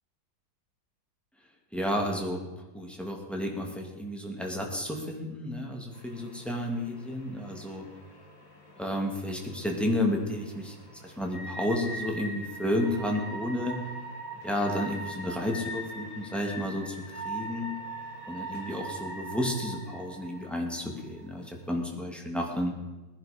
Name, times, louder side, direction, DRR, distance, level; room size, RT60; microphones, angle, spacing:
voice 1, 1.7-2.4 2.7-7.8 8.8-10.8 11.0-13.8 14.4-17.7 18.3-22.7, left 1 dB, ahead, 1 dB, 2.1 m, -31 dB
sound 1, 5.9-21.9, right 2 dB, 55° left, 3.1 m, -42 dB
20.0 x 10.5 x 5.2 m, 1.1 s
omnidirectional pair, 2.0 m